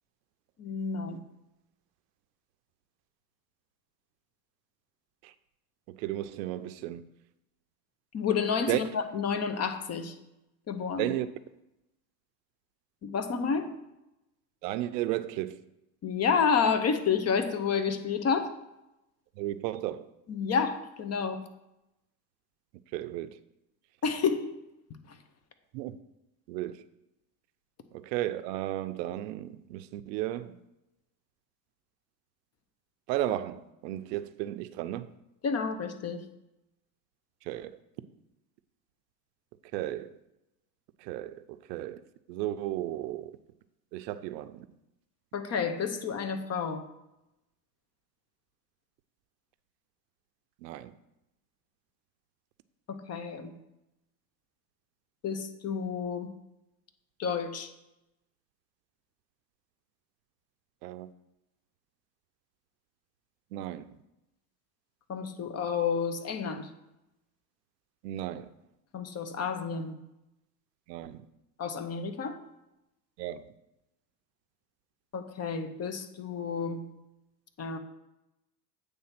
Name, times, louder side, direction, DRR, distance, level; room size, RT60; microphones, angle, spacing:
voice 1, 0.6-1.2 8.1-10.2 10.7-11.1 13.0-13.7 16.0-18.6 20.3-21.4 24.0-24.5 25.1-25.2 35.4-36.2 45.3-46.8 52.9-53.5 55.2-56.3 57.2-57.7 65.1-66.7 68.9-70.0 71.6-72.4 75.1-76.8 77.6-77.8, left 6 dB, 30° left, 0.8 m, -30 dB
voice 2, 5.9-7.0 8.7-8.8 11.0-11.3 14.6-15.6 19.4-20.1 22.9-23.4 25.7-26.0 26.5-26.8 27.9-30.6 33.1-35.1 37.4-37.8 39.7-40.2 41.0-42.0 42.3-43.4 43.9-44.7 50.6-50.9 60.8-61.1 63.5-64.0 68.0-68.5 70.9-71.3 73.2-73.5, right 14 dB, 80° right, 0.6 m, -34 dB
8.6 x 3.4 x 5.8 m
supercardioid pair, 105°, 49 cm